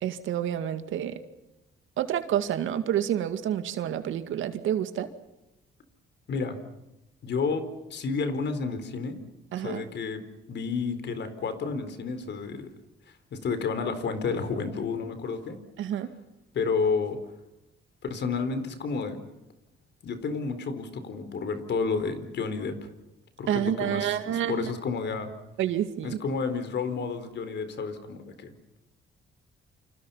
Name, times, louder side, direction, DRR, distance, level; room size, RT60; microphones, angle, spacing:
voice 1, 0.0-1.2 2.0-5.1 9.5-9.8 15.8-16.1 23.5-24.7 25.6-26.2, right 10 dB, 80° right, 9 dB, 2.1 m, -28 dB
voice 2, 7.2-9.2 9.6-10.2 10.5-12.7 13.3-15.6 16.5-17.2 18.0-19.2 20.0-22.9 23.4-25.3 26.0-28.5, left 4 dB, 60° left, 10 dB, 4.2 m, -31 dB
29.0 x 26.5 x 5.7 m, 0.93 s
cardioid pair, 90°, 20 cm